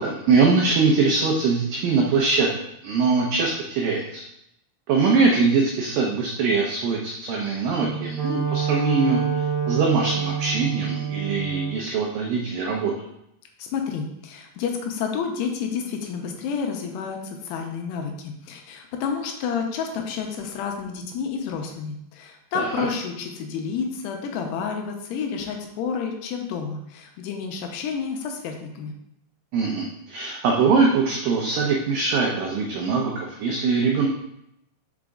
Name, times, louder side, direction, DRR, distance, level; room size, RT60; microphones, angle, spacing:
voice 1, 0.0-2.5 2.8-4.2 4.9-12.9 22.5-22.9 29.5-34.1, right 4 dB, 85° right, -1 dB, 2.0 m, -22 dB
Wind instrument woodwind instrument, 7.7-11.8, right 7 dB, 65° right, 1.3 m, -27 dB
voice 2, 13.6-28.9, left 6 dB, 80° left, 3 dB, 2.7 m, -30 dB
5.5 x 5.1 x 3.6 m, 0.79 s
omnidirectional pair, 4.9 m